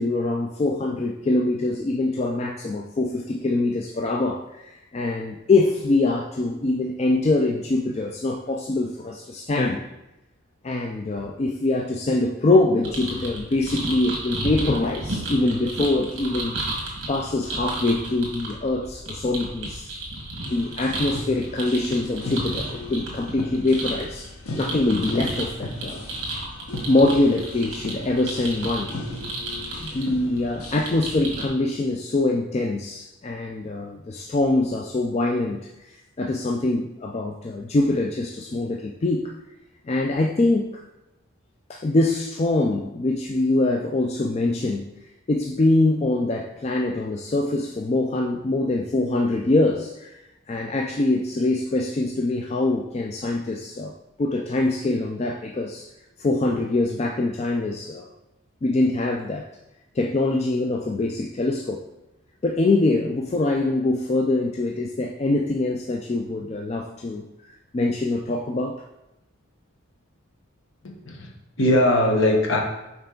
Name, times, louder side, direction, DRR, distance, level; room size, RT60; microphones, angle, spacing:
voice 1, 0.0-9.8 10.6-16.6 17.1-19.9 20.5-24.3 24.6-26.1 26.9-29.0 29.8-39.3 39.9-40.7 41.7-44.9 45.3-50.2 50.5-53.9 54.2-55.9 56.2-58.1 58.6-59.5 60.0-61.8 62.4-67.2 67.7-68.8, left 2 dB, 30° left, 1 dB, 0.3 m, -24 dB
sound 1, 12.8-31.5, right 2 dB, 55° right, 1.6 m, -33 dB
sound 2, 20.4-31.1, left 2 dB, 90° left, 0.9 m, -37 dB
voice 2, 70.8-72.6, left 1 dB, 60° left, 1 dB, 1.1 m, -21 dB
5.5 x 4.5 x 3.8 m, 0.94 s
head